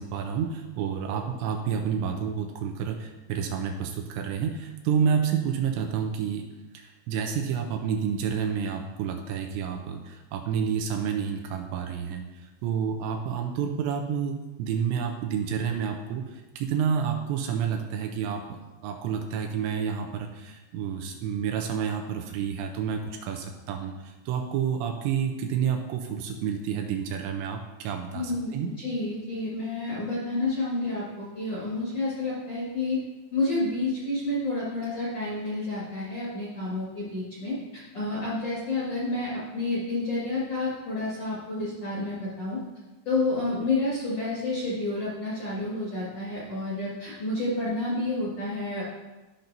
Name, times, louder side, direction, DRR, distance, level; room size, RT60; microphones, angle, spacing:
voice 1, 0.0-6.5 6.7-12.3 12.6-28.7, right 7 dB, 80° right, 3 dB, 2.8 m, -29 dB
voice 2, 28.1-33.0 33.3-42.6 43.1-48.8, left 2 dB, 50° left, -8 dB, 1.8 m, -30 dB
13.5 x 5.8 x 2.7 m, 1.1 s
omnidirectional pair, 5.3 m